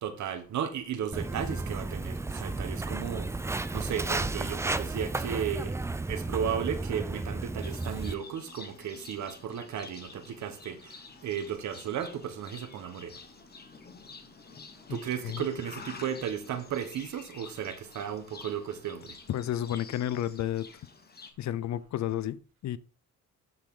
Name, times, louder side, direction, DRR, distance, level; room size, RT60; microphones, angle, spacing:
voice 1, 0.0-3.3 3.7-5.8 6.1-11.0 11.2-13.1 14.9-19.1, right 8 dB, 70° right, 1.3 m, -34 dB
Walk footsteps, 1.1-8.1, right 2 dB, 10° right, 0.4 m, -33 dB
Livestock farm animals working animals, 7.6-21.3, left 4 dB, 30° left, 1.4 m, -49 dB
voice 2, 19.3-20.7 21.4-22.8, left 11 dB, 65° left, 0.6 m, -31 dB
11.5 x 4.4 x 3.8 m
cardioid pair, 90°, 30 cm